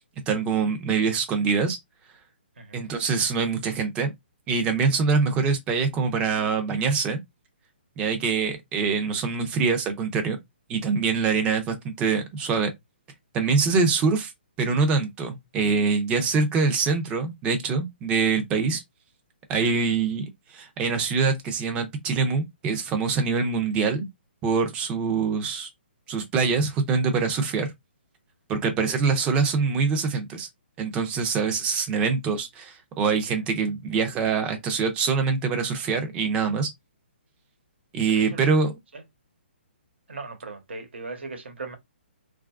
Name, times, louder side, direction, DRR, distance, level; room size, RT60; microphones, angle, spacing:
voice 1, 0.3-1.8 2.7-4.1 4.5-7.2 8.0-10.4 10.7-12.7 13.3-14.3 14.6-18.8 19.5-24.1 24.4-25.7 26.1-27.7 28.5-30.5 30.8-36.7 37.9-38.7, right 5 dB, 15° right, 0.5 m, -24 dB
voice 2, 2.6-2.9 19.5-19.8 38.3-38.4 38.9-39.0 40.1-41.7, right 3 dB, 75° right, 1.0 m, -38 dB
2.9 x 2.4 x 2.3 m
hypercardioid pair, 155°, 6 cm